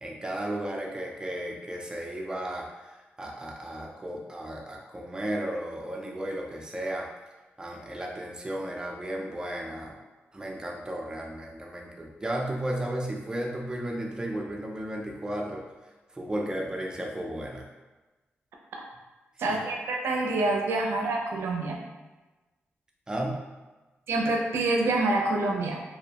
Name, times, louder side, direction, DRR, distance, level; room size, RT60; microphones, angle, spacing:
voice 1, 0.0-7.1 7.6-10.0 10.3-15.6 16.1-17.7 19.5-19.6 23.1-23.4, right 1 dB, 20° right, 0 dB, 0.4 m, -34 dB
voice 2, 19.4-21.8 24.1-25.8, right 2 dB, 85° right, 0 dB, 0.4 m, -26 dB
2.5 x 2.1 x 2.8 m, 1.2 s
cardioid pair, 100°, 4 cm